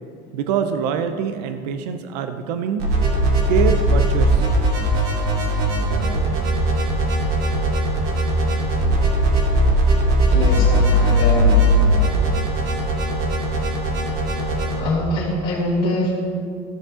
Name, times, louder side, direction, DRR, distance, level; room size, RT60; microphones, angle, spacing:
voice 1, 0.3-2.9 3.5-4.5, right 7 dB, 90° right, 8 dB, 0.6 m, -24 dB
sound 1, 2.8-14.8, right 1 dB, 50° right, 2.3 m, -19 dB
voice 2, 10.3-11.7 14.6-16.1, left 2 dB, 50° left, -7 dB, 2.2 m, -24 dB
14.0 x 6.7 x 3.7 m, 2.2 s
supercardioid pair, 140°, 21 cm